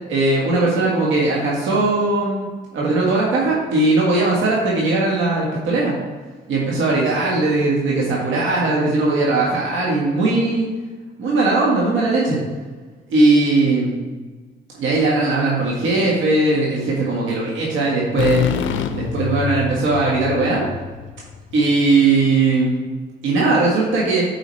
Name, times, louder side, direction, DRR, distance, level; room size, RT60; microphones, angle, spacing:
voice 1, 0.1-2.5 2.7-6.0 6.5-10.7 11.2-12.4 13.1-13.9 14.7-18.4 18.9-20.6 21.5-22.8 23.2-24.2, right 3 dB, 80° right, -4 dB, 1.6 m, -19 dB
sound 1, 18.2-21.9, left 7 dB, 75° left, 0.5 m, -25 dB
8.5 x 4.9 x 3.2 m, 1.4 s
cardioid pair, 90°, 20 cm